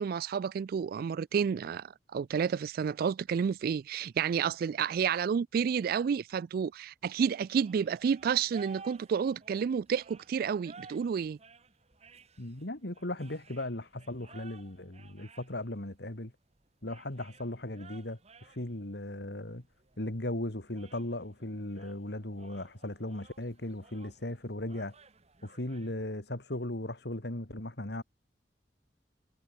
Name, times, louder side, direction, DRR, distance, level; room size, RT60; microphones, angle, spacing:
voice 1, 0.0-11.4, right 7 dB, 55° right, 0.3 m, -30 dB
sound 1, 7.4-25.9, right 4 dB, 40° right, 2.9 m, -56 dB
voice 2, 12.4-16.3 16.8-19.6 20.0-24.9 25.4-28.0, left 1 dB, 65° left, 2.7 m, -37 dB
head